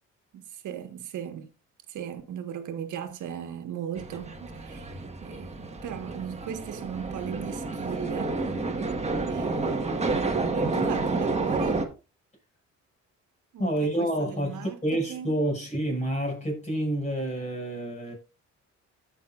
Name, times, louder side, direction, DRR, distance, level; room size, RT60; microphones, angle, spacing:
voice 1, 0.3-1.5 1.9-8.7 9.2-9.9 10.5-11.9 13.5-15.3, right 9 dB, 80° right, 1.5 m, -38 dB
sound 1, 4.0-11.8, right 3 dB, 20° right, 1.5 m, -30 dB
voice 2, 13.6-18.1, right 1 dB, 25° left, 6.0 m, -28 dB
14.5 x 6.0 x 2.5 m
cardioid pair, 90°, 30 cm